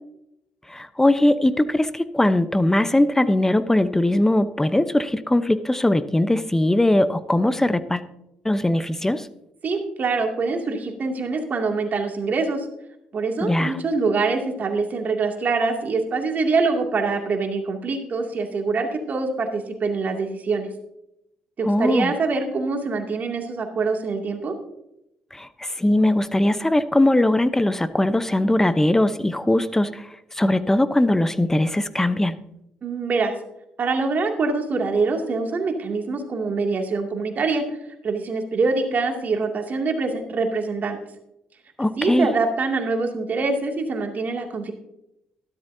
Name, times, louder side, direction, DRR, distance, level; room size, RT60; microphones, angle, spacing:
voice 1, 0.7-8.0 8.4-9.3 13.4-13.8 21.6-22.1 25.3-32.4 41.8-42.3, left 1 dB, 10° left, 13 dB, 0.8 m, -20 dB
voice 2, 9.6-12.7 13.1-20.7 21.6-24.5 32.8-33.3 33.8-41.0 42.0-44.7, right 4 dB, 50° right, 3 dB, 2.4 m, -24 dB
14.0 x 12.5 x 2.7 m, 0.82 s
hypercardioid pair, 55°, 4 cm